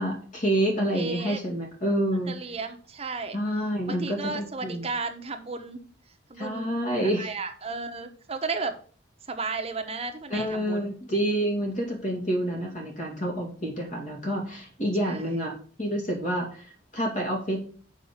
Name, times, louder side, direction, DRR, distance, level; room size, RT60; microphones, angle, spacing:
voice 1, 0.0-2.3 3.3-4.9 6.4-7.3 10.3-15.5 15.8-17.6, right 1 dB, 45° left, 0 dB, 2.5 m, -28 dB
voice 2, 0.9-1.4 2.3-3.4 3.9-5.9 6.3-6.7 7.0-8.8 9.2-10.9 15.0-15.4, right 4 dB, 35° right, 5 dB, 1.2 m, -34 dB
7.3 x 5.4 x 6.6 m, 0.43 s
head